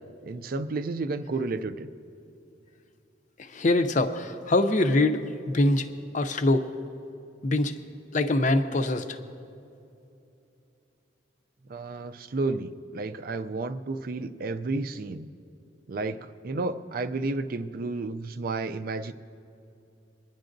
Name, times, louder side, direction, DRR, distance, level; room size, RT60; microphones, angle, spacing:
voice 1, 0.2-1.9 11.7-15.3 15.9-19.1, right 3 dB, 50° right, 10 dB, 0.4 m, -31 dB
voice 2, 3.4-5.9 6.1-6.7 7.4-7.7 8.1-9.2, left 2 dB, 40° left, 8 dB, 0.5 m, -24 dB
25.0 x 10.5 x 2.6 m, 2.7 s
head